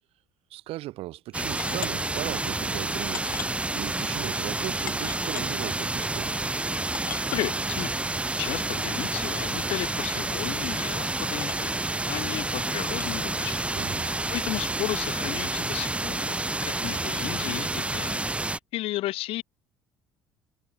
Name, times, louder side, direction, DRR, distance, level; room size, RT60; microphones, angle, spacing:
voice 1, 0.5-3.4 3.7-6.3 13.7-14.1, right 17 dB, 65° right, 2.8 m, -37 dB
sound 1, 1.3-18.6, right 2 dB, 10° right, 0.8 m, -29 dB
sound 2, 1.6-1.9 2.6-2.7 3.1-3.6 4.3-4.4 4.9-5.5 6.3-6.4 6.5-6.6 6.9-7.3 8.4-8.5 9.2-9.5 10.5-10.7 11.4-11.7 12.9-13.1, left 11 dB, 85° left, 3.1 m, -39 dB
voice 2, 7.3-8.1 8.4-11.7 12.1-13.6 14.0-16.4 16.6-19.4, left 17 dB, 65° left, 5.5 m, -34 dB
hypercardioid pair, 60°, 11 cm